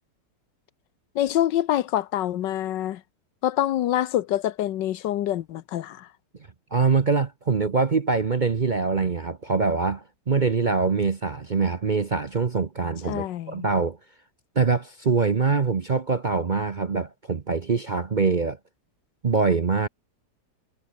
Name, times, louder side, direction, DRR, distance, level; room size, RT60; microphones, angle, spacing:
voice 1, 1.1-3.0 3.4-6.1 13.1-13.7, left 12 dB, 85° left, 1.5 m, -26 dB
voice 2, 6.7-14.0 14.6-18.6 19.2-19.9, right 4 dB, 40° right, 0.7 m, -24 dB
omnidirectional pair, 1.9 m